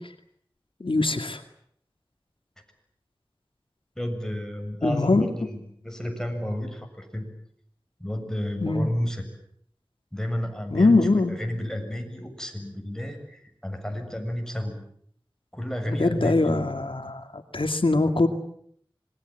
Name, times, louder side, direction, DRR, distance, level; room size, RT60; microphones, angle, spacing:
voice 1, 0.8-1.4 4.8-5.3 8.6-8.9 10.7-11.4 15.9-17.2 17.5-18.3, left 2 dB, 85° left, 7 dB, 2.2 m, -22 dB
voice 2, 4.0-7.3 8.0-9.2 10.1-14.8 15.5-16.6, equal, 5° left, 4 dB, 7.2 m, -31 dB
26.0 x 22.0 x 9.0 m, 0.66 s
wide cardioid pair, 45°, 9 cm